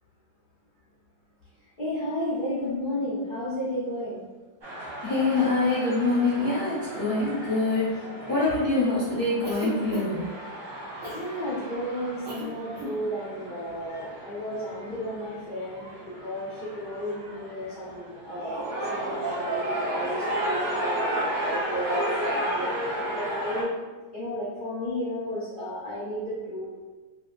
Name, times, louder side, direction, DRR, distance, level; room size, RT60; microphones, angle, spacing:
voice 1, 1.8-4.2 11.1-23.8 24.1-26.7, equal, 60° left, -11 dB, 0.5 m, -33 dB
sound 1, 4.6-23.6, right 1 dB, 45° right, 1.0 m, -33 dB
voice 2, 5.0-7.9 8.3-10.2, left 3 dB, 35° left, -12 dB, 0.8 m, -25 dB
Cough, 9.4-10.3 11.0-11.3 12.2-12.5 12.7-13.0, left 1 dB, 70° right, 0.7 m, -34 dB
2.9 x 2.8 x 2.4 m, 1.2 s
omnidirectional pair, 2.2 m